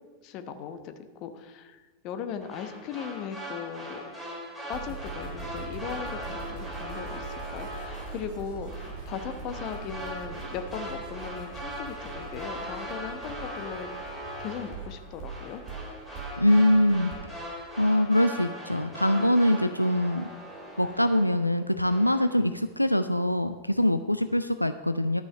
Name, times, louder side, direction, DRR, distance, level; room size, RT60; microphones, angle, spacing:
voice 1, 0.2-4.0 4.7-15.6, left 7 dB, 40° left, 9 dB, 1.0 m, -38 dB
sound 1, 2.4-21.5 21.8-22.3, equal, 5° right, 3.9 m, -40 dB
sound 2, 4.7-17.2, right 4 dB, 40° right, 3.2 m, -42 dB
voice 2, 16.4-17.1 17.8-20.3 20.8-25.2, left 1 dB, 90° left, 10 dB, 0.3 m, -23 dB
12.0 x 6.2 x 6.5 m, 1.3 s
figure-of-eight pair, 90°, 0 cm